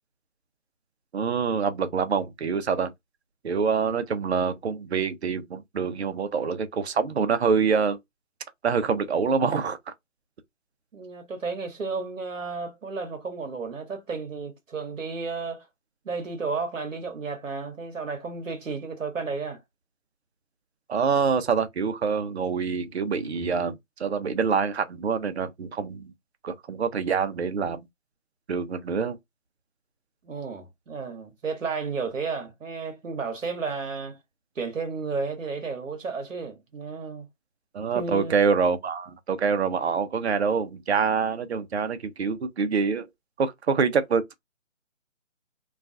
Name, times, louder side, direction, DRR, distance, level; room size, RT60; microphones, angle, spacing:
voice 1, 1.1-2.9 3.4-8.0 8.6-9.8 20.9-26.1 26.4-27.9 28.5-29.2 37.7-43.1 43.4-44.3, right 5 dB, 55° right, 0.5 m, -26 dB
voice 2, 10.9-15.7 16.0-19.6 30.2-34.2 34.6-37.3 37.9-38.4, right 4 dB, 70° right, 0.9 m, -32 dB
2.3 x 2.3 x 2.4 m
figure-of-eight pair, 165°, 40 cm